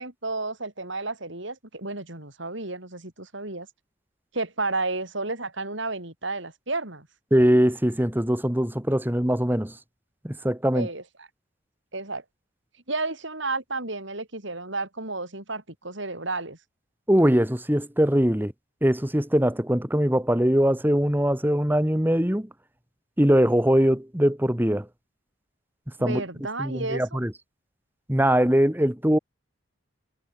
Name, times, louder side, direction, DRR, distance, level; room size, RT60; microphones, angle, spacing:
voice 1, 0.0-3.7 4.3-7.1 10.7-11.0 11.9-12.2 12.9-16.6 26.0-27.2, right 3 dB, 60° right, 5.0 m, -32 dB
voice 2, 7.3-9.8 10.2-10.9 17.1-18.5 18.8-22.5 23.2-24.9 26.0-26.2 26.6-27.3 28.1-29.2, equal, 10° right, 1.4 m, -22 dB
head